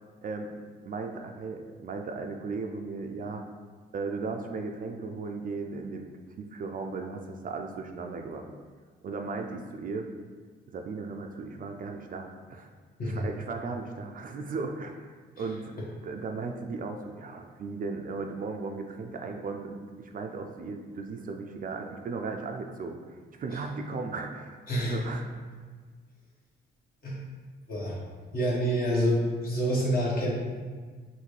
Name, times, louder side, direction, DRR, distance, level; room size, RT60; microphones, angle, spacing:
voice 1, 0.2-0.5 0.8-3.4 3.9-6.1 6.4-8.5 9.0-10.1 10.7-12.7 13.0-25.3, right 4 dB, 45° right, 4 dB, 0.4 m, -36 dB
voice 2, 24.7-25.0 27.0-27.2 27.7-28.0 28.3-30.3, equal, 50° left, -5 dB, 1.4 m, -27 dB
5.7 x 2.6 x 3.2 m, 1.5 s
cardioid pair, 90°, 20 cm